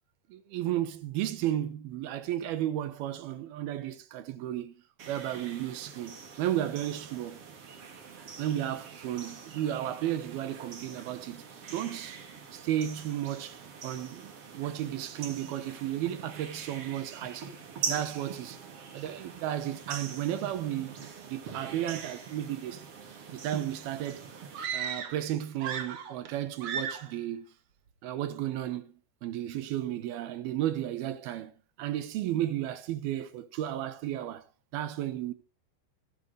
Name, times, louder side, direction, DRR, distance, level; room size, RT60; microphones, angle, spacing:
voice 1, 0.3-4.8 5.1-7.4 8.4-11.4 11.7-12.2 12.5-17.5 17.9-18.6 18.9-22.8 23.3-24.3 24.7-27.5 28.0-28.9 29.2-31.5 31.8-34.5 34.7-35.3, right 12 dB, 75° right, 2.9 m, -33 dB
sound 1, 5.0-24.6, right 6 dB, 45° right, 2.8 m, -43 dB
sound 2, 24.5-25.3 25.6-26.3 26.6-27.1, right 7 dB, 60° right, 1.5 m, -35 dB
26.0 x 9.1 x 3.3 m
omnidirectional pair, 4.5 m